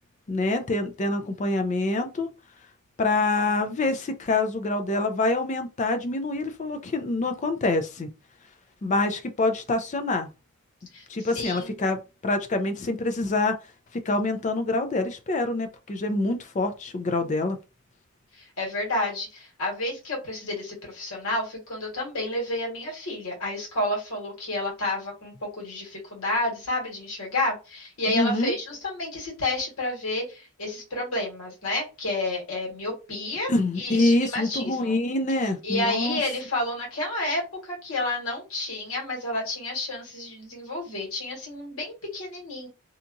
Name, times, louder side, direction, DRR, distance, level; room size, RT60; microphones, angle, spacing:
voice 1, 0.3-2.3 3.0-8.1 8.8-10.3 11.1-13.6 13.9-17.6 28.1-28.6 33.5-36.2, left 2 dB, 30° left, 0.4 m, -26 dB
voice 2, 10.9-11.8 18.3-35.0 35.6-42.7, left 2 dB, 75° left, 1.5 m, -30 dB
2.8 x 2.4 x 2.5 m
head